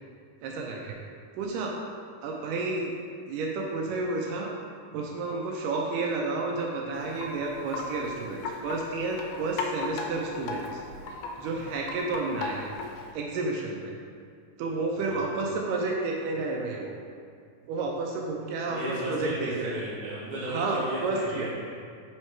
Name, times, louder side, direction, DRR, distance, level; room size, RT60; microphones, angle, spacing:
voice 1, 0.4-1.0 1.4-1.7 2.2-2.9 3.3-4.5 4.9-10.8 11.4-12.7 13.1-14.0 14.6-16.9 17.6-19.8 20.5-21.5, right 3 dB, 85° right, 0 dB, 2.2 m, -31 dB
Wind chime, 6.9-13.1, left 3 dB, 85° left, 2.3 m, -37 dB
voice 2, 15.0-15.3 18.6-21.7, right 1 dB, 55° right, -7 dB, 2.2 m, -35 dB
5.6 x 4.5 x 4.4 m, 2.2 s
omnidirectional pair, 3.7 m